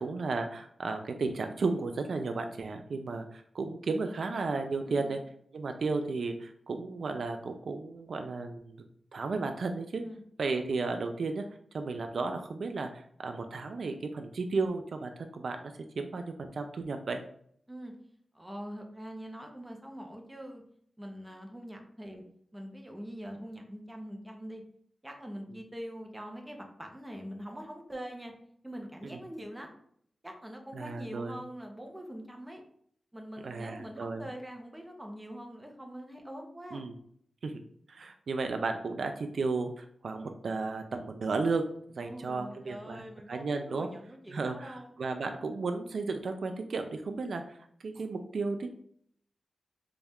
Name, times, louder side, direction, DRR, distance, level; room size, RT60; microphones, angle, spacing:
voice 1, 0.0-5.2 5.5-8.8 9.1-10.0 10.4-11.4 11.7-15.6 16.0-17.2 29.1-29.2 30.7-31.4 33.4-34.2 36.7-37.0 37.4-37.5 37.9-43.9 44.3-47.6 47.8-48.7, right 3 dB, 65° right, 6 dB, 0.3 m, -34 dB
voice 2, 18.3-20.6 21.0-22.2 22.5-24.6 25.0-28.3 28.6-29.7 30.2-32.6 33.1-36.9 42.0-44.9, equal, 10° right, 2 dB, 0.6 m, -43 dB
4.0 x 2.3 x 3.4 m, 0.65 s
wide cardioid pair, 130°, 0 cm